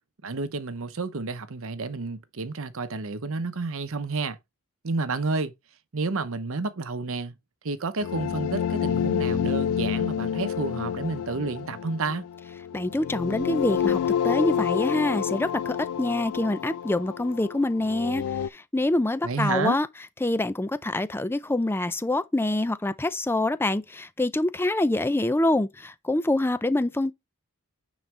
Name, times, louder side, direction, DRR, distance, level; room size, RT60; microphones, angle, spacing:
voice 1, 0.2-4.4 4.8-5.5 5.9-7.3 7.6-12.2 19.2-19.8, right 3 dB, 65° right, 0.8 m, -30 dB
sound 1, 8.0-18.5, left 8 dB, 75° left, 0.3 m, -28 dB
voice 2, 12.7-14.0 14.2-18.2 18.7-19.9 20.2-27.1, left 1 dB, 10° left, 0.4 m, -25 dB
9.5 x 4.0 x 3.3 m
head